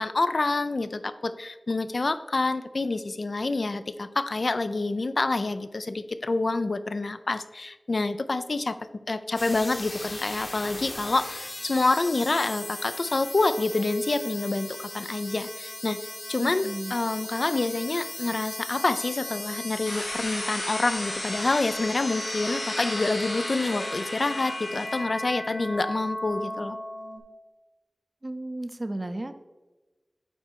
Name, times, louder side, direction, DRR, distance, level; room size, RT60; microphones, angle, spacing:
voice 1, 0.0-8.8 9.1-16.0 16.3-26.8, left 3 dB, 65° left, 11 dB, 0.4 m, -27 dB
sound 1, 9.4-27.2, left 1 dB, 50° left, 1.1 m, -37 dB
voice 2, 16.4-16.9 28.2-29.4, right 1 dB, 35° right, 9 dB, 0.6 m, -34 dB
sound 2, 19.8-25.0, left 1 dB, 85° left, 2.0 m, -36 dB
8.9 x 4.3 x 4.6 m, 1.2 s
wide cardioid pair, 60°, 0 cm